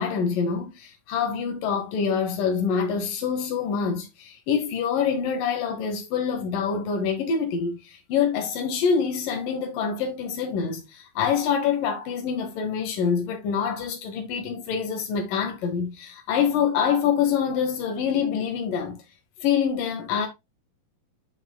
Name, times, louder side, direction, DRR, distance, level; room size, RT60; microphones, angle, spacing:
voice 1, 0.0-19.0 19.4-20.3, left 7 dB, 75° left, 3.0 m, -26 dB
7.4 x 5.9 x 2.2 m
omnidirectional pair, 4.1 m